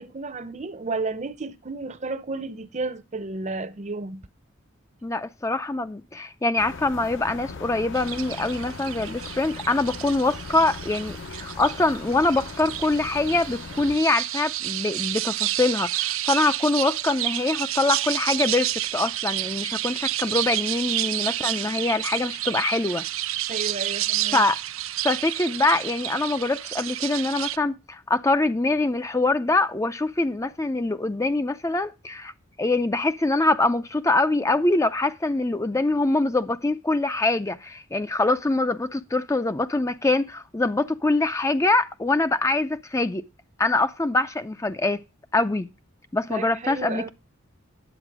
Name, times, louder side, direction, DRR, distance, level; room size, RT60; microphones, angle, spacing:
voice 1, 0.0-4.2 23.5-24.4 46.3-47.1, right 3 dB, 35° right, 0.7 m, -32 dB
voice 2, 5.0-23.0 24.3-24.6 25.0-32.3 32.6-43.2 43.6-45.0 45.3-45.7 46.1-47.1, left 2 dB, 15° left, 0.4 m, -24 dB
sound 1, 6.6-14.0, left 4 dB, 65° left, 0.9 m, -39 dB
sound 2, 7.9-27.6, right 14 dB, 80° right, 0.6 m, -30 dB
10.0 x 8.1 x 4.7 m
head